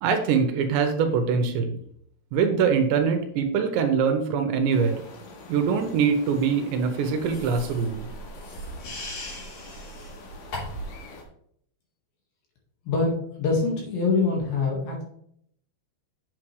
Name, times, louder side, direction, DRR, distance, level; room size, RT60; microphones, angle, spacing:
voice 1, 0.0-1.8 2.3-5.0 5.5-8.1, right 6 dB, 80° right, 6 dB, 3.0 m, -23 dB
sound 1, 4.7-11.2, left 3 dB, 80° left, 3.8 m, -45 dB
sound 2, 7.2-11.0, equal, 40° left, 4.5 m, -38 dB
voice 2, 13.4-15.0, left 4 dB, 60° left, -1 dB, 3.1 m, -24 dB
8.5 x 7.4 x 3.2 m, 0.68 s
omnidirectional pair, 5.4 m